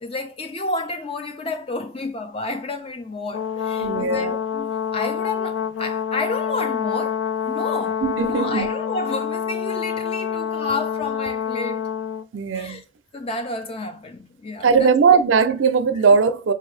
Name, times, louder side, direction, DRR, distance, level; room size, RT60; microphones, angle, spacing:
voice 1, 0.0-11.9 12.5-12.8 13.1-15.2 15.9-16.0, left 2 dB, 30° left, 0.5 m, -31 dB
Brass instrument, 3.3-12.3, left 8 dB, 80° left, 0.3 m, -27 dB
voice 2, 3.8-4.4 8.0-8.7 12.3-12.8 14.6-16.5, right 5 dB, 90° right, 0.5 m, -19 dB
4.8 x 2.7 x 3.2 m
head